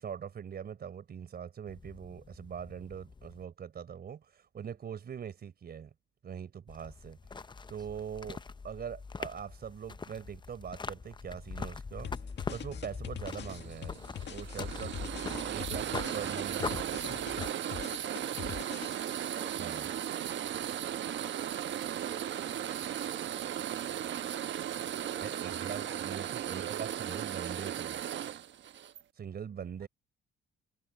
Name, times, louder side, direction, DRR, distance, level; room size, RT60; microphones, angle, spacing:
voice 1, 0.0-5.9 6.2-12.1 12.5-15.1 15.5-17.0 19.6-19.9 25.2-28.0 29.2-29.9, right 8 dB, 50° right, 4.1 m, -42 dB
sound 1, 1.7-3.4 6.7-17.5, left 4 dB, 25° left, 0.7 m, -43 dB
voice 2, 7.6-8.0 29.5-29.9, right 3 dB, 20° right, 4.6 m, -56 dB
sound 2, 12.0-19.4, left 9 dB, 60° left, 1.8 m, -43 dB
sound 3, 13.5-29.0, right 10 dB, 65° right, 1.2 m, -36 dB
cardioid pair, 90°, 20 cm